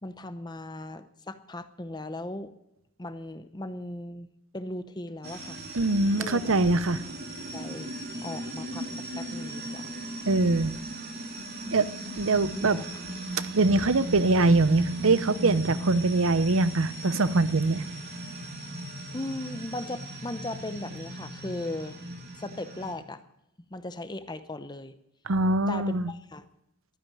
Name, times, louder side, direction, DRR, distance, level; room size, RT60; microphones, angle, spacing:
voice 1, 0.0-2.5 3.0-4.3 4.5-5.6 6.2-6.6 7.5-7.9 8.2-9.9 12.5-13.0 19.1-22.0 22.4-23.2 23.7-25.0 25.7-26.5, left 2 dB, 20° left, 11 dB, 0.7 m, -37 dB
sound 1, 5.2-22.9, right 1 dB, 45° right, 2.8 m, -37 dB
voice 2, 5.7-7.0 10.3-10.7 11.7-11.9 12.2-12.8 13.5-17.8 25.3-26.1, right 2 dB, 65° right, 14 dB, 0.7 m, -23 dB
12.0 x 10.0 x 9.9 m, 0.86 s
head